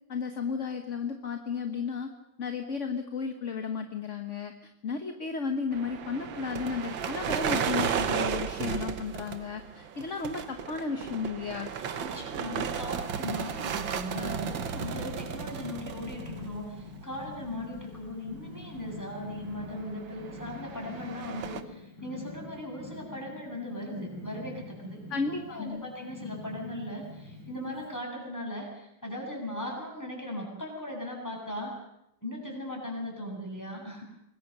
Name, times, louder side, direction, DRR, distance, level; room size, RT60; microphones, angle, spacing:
voice 1, 0.1-2.1 2.4-11.7 25.1-25.9, left 5 dB, 40° left, 6 dB, 1.6 m, -34 dB
sound 1, 5.7-17.0 17.3-17.7 18.0-18.1 19.8-21.6, right 7 dB, 80° right, 2.0 m, -34 dB
voice 2, 12.0-31.8 32.2-34.0, left 1 dB, 10° left, 0 dB, 7.4 m, -38 dB
Purr, 13.2-28.0, left 3 dB, 85° left, 6.5 m, -45 dB
25.5 x 20.5 x 6.7 m, 0.84 s
omnidirectional pair, 2.1 m